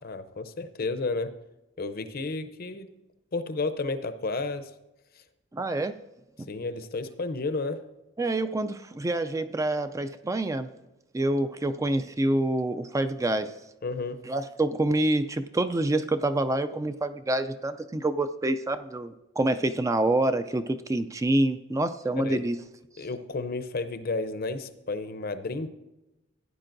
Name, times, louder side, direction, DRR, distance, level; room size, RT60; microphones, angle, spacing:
voice 1, 0.0-1.3 1.8-2.9 3.3-4.7 6.5-7.8 13.8-14.2 22.2-22.4 23.0-25.7, left 3 dB, 50° left, 10 dB, 0.6 m, -32 dB
voice 2, 5.5-6.0 8.2-10.7 11.1-13.5 14.3-22.6, right 1 dB, 15° right, 10 dB, 0.3 m, -27 dB
16.0 x 9.7 x 2.6 m, 0.98 s
head